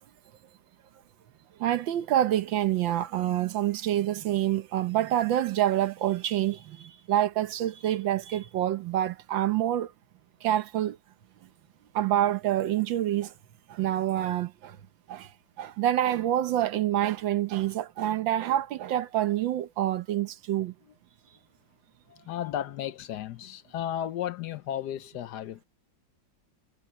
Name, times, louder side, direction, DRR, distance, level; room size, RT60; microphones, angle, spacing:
voice 1, 1.6-9.9 10.4-11.0 11.9-13.3 13.7-14.8 15.1-15.3 15.6-20.7, right 12 dB, 85° right, 1.6 m, -27 dB
voice 2, 22.1-25.6, left 11 dB, 70° left, 1.2 m, -34 dB
omnidirectional pair, 2.0 m